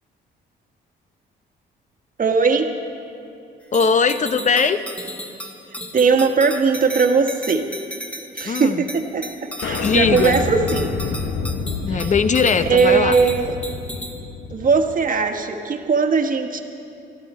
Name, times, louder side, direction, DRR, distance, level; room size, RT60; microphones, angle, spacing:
voice 1, 2.2-2.7 5.9-7.6 8.4-10.9 11.9-12.1 12.6-13.5 14.5-16.6, right 5 dB, 45° right, 4 dB, 1.5 m, -19 dB
voice 2, 3.7-4.8 8.4-8.8 9.8-10.4 11.8-13.2, left 5 dB, 40° left, 11 dB, 0.9 m, -19 dB
sound 1, 3.7-14.2, equal, 5° left, 1.8 m, -35 dB
sound 2, 9.6-14.9, left 4 dB, 70° left, 1.1 m, -28 dB
24.5 x 13.0 x 4.4 m, 2.6 s
cardioid pair, 90°, 20 cm